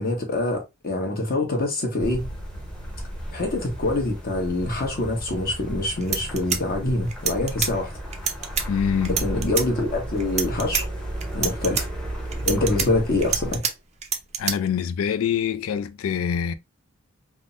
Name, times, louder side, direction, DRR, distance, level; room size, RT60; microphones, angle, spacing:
voice 1, 0.0-2.3 3.3-7.9 9.1-10.9 11.3-11.9 12.4-13.6, left 2 dB, 45° left, 1.0 m, -25 dB
sound 1, 2.0-13.6, right 1 dB, 5° left, 0.8 m, -33 dB
sound 2, 5.7-5.8 6.0-7.7 8.1-8.6 9.0-9.7 10.2-10.8 11.2-11.8 12.3-13.7 14.0-14.5, right 8 dB, 30° right, 0.4 m, -26 dB
voice 2, 8.7-9.2 14.4-16.5, left 8 dB, 70° left, 0.3 m, -25 dB
3.4 x 2.0 x 2.5 m
head